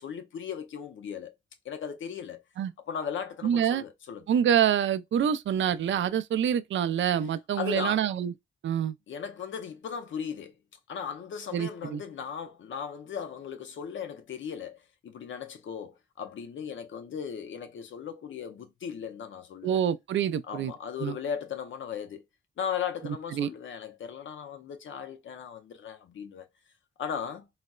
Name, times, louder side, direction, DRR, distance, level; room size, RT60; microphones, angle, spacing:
voice 1, 0.0-1.3 1.6-2.4 2.9-4.3 7.6-8.0 9.1-10.6 10.9-19.8 20.5-22.2 22.6-26.5 27.0-27.5, left 7 dB, 90° left, 0.7 m, -37 dB
voice 2, 3.4-3.8 4.3-8.3 8.6-8.9 11.5-12.0 19.6-20.7 21.0-21.2 23.3-23.5, right 9 dB, 80° right, 0.4 m, -26 dB
4.0 x 2.1 x 2.3 m
cardioid pair, 90°, 19 cm